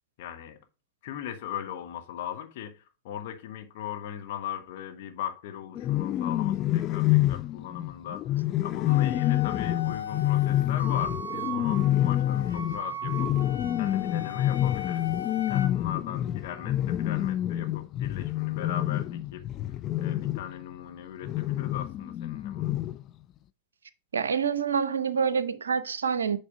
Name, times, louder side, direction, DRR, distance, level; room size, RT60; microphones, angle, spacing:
voice 1, 0.2-0.6 1.0-15.1 15.5-22.7, left 10 dB, 50° left, 1.2 m, -39 dB
sound 1, 5.8-20.5 21.2-23.1, left 13 dB, 35° left, 0.3 m, -27 dB
Wind instrument woodwind instrument, 8.9-15.7, left 3 dB, 85° left, 1.2 m, -37 dB
voice 2, 24.1-26.4, right 6 dB, 70° right, 0.6 m, -27 dB
8.5 x 3.3 x 5.0 m
figure-of-eight pair, 90°, 0 cm